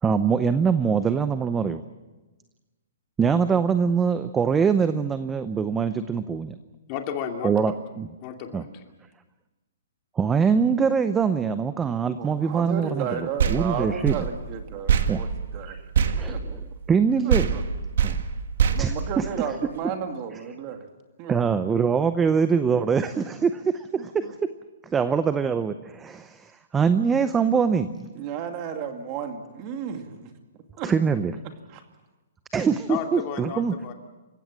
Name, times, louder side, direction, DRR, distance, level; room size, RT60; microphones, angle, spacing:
voice 1, 0.0-1.8 3.2-6.5 7.4-8.1 8.5-8.6 10.2-14.2 15.1-15.2 16.0-17.5 18.0-18.2 18.8-19.2 21.3-24.3 24.8-28.1 30.8-31.4 32.5-33.7, right 6 dB, 10° right, 11 dB, 0.6 m, -23 dB
voice 2, 6.9-7.7 8.2-8.7 32.9-33.9, left 8 dB, 30° left, 4 dB, 2.6 m, -32 dB
voice 3, 12.2-15.3 15.5-15.8 16.3-16.4 17.2-17.6 18.7-20.9 21.2-21.4 24.0-24.3 28.1-30.3 30.8-30.9 31.7-31.8, right 7 dB, 30° right, 5 dB, 2.4 m, -33 dB
sound 1, 13.4-17.0 17.3-19.8, right 7 dB, 60° right, 1.7 m, -25 dB
28.5 x 16.0 x 7.5 m, 1.2 s
hypercardioid pair, 160°, 0 cm